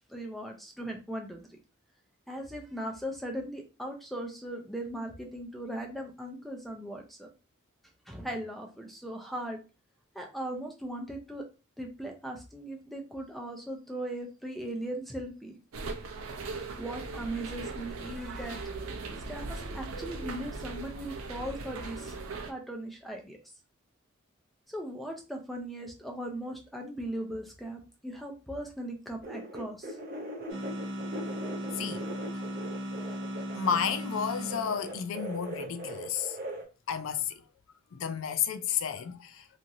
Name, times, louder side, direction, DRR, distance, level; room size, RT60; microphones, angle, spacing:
voice 1, 0.1-1.4 2.3-7.3 8.1-9.6 10.1-11.4 11.8-15.6 16.8-18.7 19.3-23.4 24.7-30.0, right 1 dB, ahead, 0.4 m, -38 dB
sound 1, 15.7-22.5, right 3 dB, 85° right, 0.5 m, -39 dB
sound 2, 29.2-34.1 34.4-36.6, right 1 dB, 45° right, 0.6 m, -40 dB
sound 3, 30.5-35.2, equal, 60° right, 1.0 m, -37 dB
voice 2, 33.6-36.4 36.9-37.4 37.9-39.4, left 7 dB, 70° left, 0.4 m, -32 dB
2.9 x 2.4 x 2.6 m
head